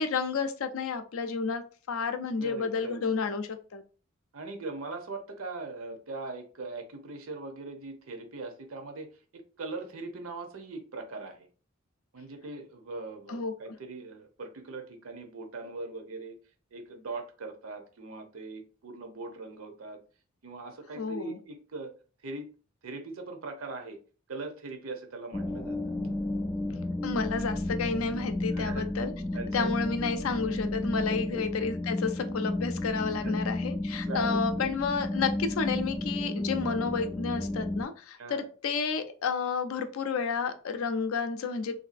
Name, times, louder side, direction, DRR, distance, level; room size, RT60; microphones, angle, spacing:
voice 1, 0.0-1.6 1.9-3.8 13.3-13.5 21.0-21.4 27.0-29.1 29.5-41.8, left 5 dB, 75° left, 8 dB, 0.5 m, -31 dB
voice 2, 2.4-3.0 4.3-11.5 12.1-16.4 16.7-20.0 20.4-21.9 22.2-22.5 22.8-24.0 24.3-25.8 28.5-28.9 29.3-29.7 31.0-31.5 33.2-33.4 34.0-34.7 38.2-38.5, right 3 dB, 80° right, 5 dB, 0.7 m, -40 dB
sound 1, 25.3-37.8, left 1 dB, 10° left, 0.3 m, -32 dB
3.1 x 2.6 x 2.5 m, 0.38 s
head